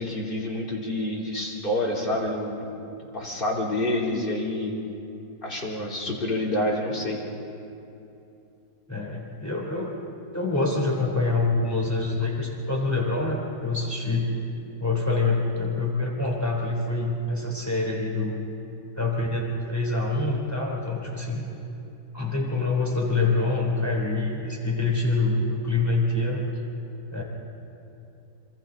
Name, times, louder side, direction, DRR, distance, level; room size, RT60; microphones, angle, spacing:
voice 1, 0.0-2.7 3.1-4.7 5.4-7.2, left 1 dB, 30° left, -4 dB, 3.5 m, -28 dB
voice 2, 8.9-9.9 10.3-14.4 14.8-18.4 19.0-21.5 22.1-26.4 27.1-27.2, left 3 dB, 10° left, -2 dB, 3.3 m, -26 dB
26.5 x 26.0 x 4.0 m, 2.8 s
omnidirectional pair, 1.8 m